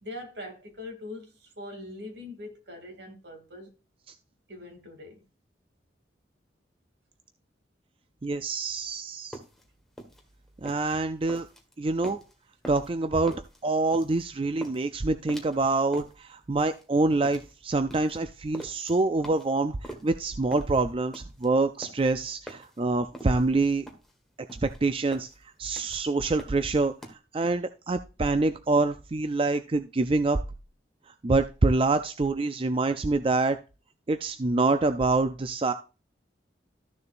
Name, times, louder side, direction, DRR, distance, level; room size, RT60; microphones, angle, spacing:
voice 1, 0.0-3.7 4.5-5.2, left 1 dB, 75° right, 2.7 m, -42 dB
voice 2, 8.2-9.4 10.6-11.5 11.8-12.2 12.7-13.4 13.6-23.8 24.6-25.3 25.6-26.9 27.3-30.4 31.2-33.6 34.1-35.7, right 3 dB, 30° right, 0.4 m, -26 dB
sound 1, 9.1-27.1, right 1 dB, ahead, 1.5 m, -46 dB
13.5 x 6.7 x 2.6 m
head